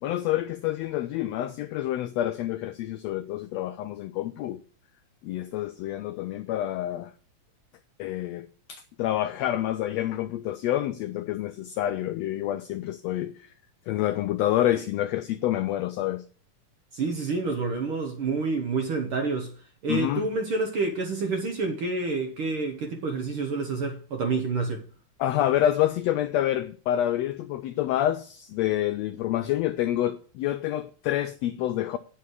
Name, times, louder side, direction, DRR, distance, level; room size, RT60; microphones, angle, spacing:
voice 1, 0.0-4.6 5.2-7.1 8.0-13.5 13.9-16.2 19.9-20.3 25.2-32.0, left 12 dB, 85° left, 1.5 m, -28 dB
voice 2, 16.9-24.8, right 3 dB, 60° right, 1.4 m, -28 dB
9.5 x 6.9 x 4.7 m
omnidirectional pair, 3.5 m